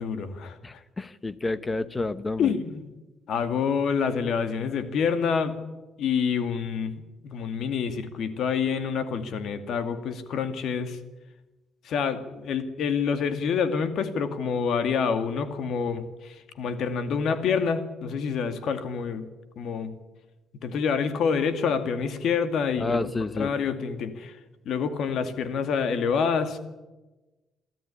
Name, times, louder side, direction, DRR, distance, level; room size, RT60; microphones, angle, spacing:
voice 1, 0.0-0.8 2.4-2.9 3.3-5.6 6.0-11.0 11.8-19.3 19.6-20.0 20.6-24.4 24.7-26.6, left 6 dB, 70° left, 10 dB, 2.3 m, -27 dB
voice 2, 0.6-2.5 22.8-23.5, left 3 dB, 25° left, 15 dB, 1.1 m, -29 dB
24.0 x 13.5 x 10.0 m, 1.1 s
cardioid pair, 90°, 0 cm